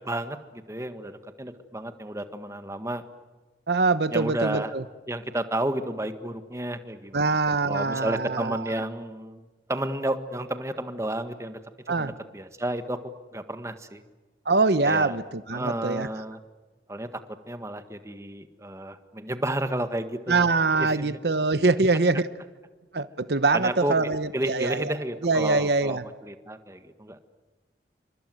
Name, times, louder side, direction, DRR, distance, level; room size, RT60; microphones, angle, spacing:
voice 1, 0.0-3.0 4.1-4.7 5.1-7.3 7.7-11.6 11.9-13.0 13.3-14.0 14.8-15.2 15.5-16.4 16.9-17.2 17.5-20.5 20.8-21.2 23.5-23.9 24.3-27.2, right 1 dB, 15° right, 9 dB, 1.7 m, -31 dB
voice 2, 3.7-4.8 7.1-8.8 11.9-12.1 14.5-16.1 20.3-22.3 22.9-24.9 25.2-26.0, right 3 dB, 70° right, 13 dB, 1.0 m, -24 dB
29.0 x 26.0 x 7.9 m, 1.3 s
head